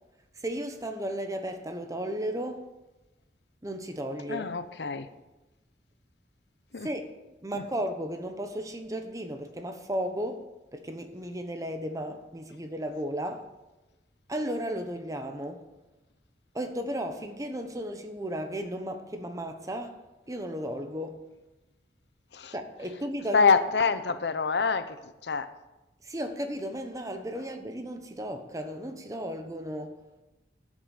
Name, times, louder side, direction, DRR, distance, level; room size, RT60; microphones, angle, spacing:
voice 1, 0.3-2.6 3.6-4.5 6.8-7.1 7.4-13.5 14.3-15.7 16.5-21.2 22.5-23.5 26.0-30.0, equal, 20° right, 1.0 m, -34 dB
voice 2, 4.3-5.1 6.7-6.9 7.5-7.6 22.3-22.5 23.3-25.5, left 5 dB, 75° left, 0.7 m, -26 dB
12.5 x 6.3 x 7.2 m
head